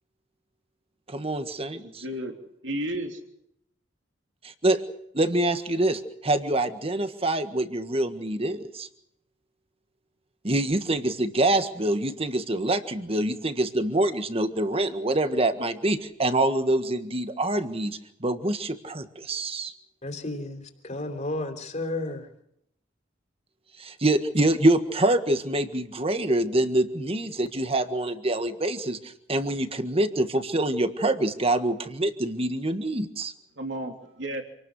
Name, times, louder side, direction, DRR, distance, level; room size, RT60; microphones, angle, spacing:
voice 1, 1.1-2.0 4.6-4.8 5.1-8.9 10.4-19.7 23.8-33.3, right 1 dB, 30° right, 1.6 m, -25 dB
voice 2, 1.7-2.4 2.6-3.2 33.6-34.4, right 1 dB, 65° right, 3.2 m, -33 dB
voice 3, 20.0-22.3, left 2 dB, 40° left, 3.5 m, -32 dB
27.5 x 19.0 x 6.5 m
head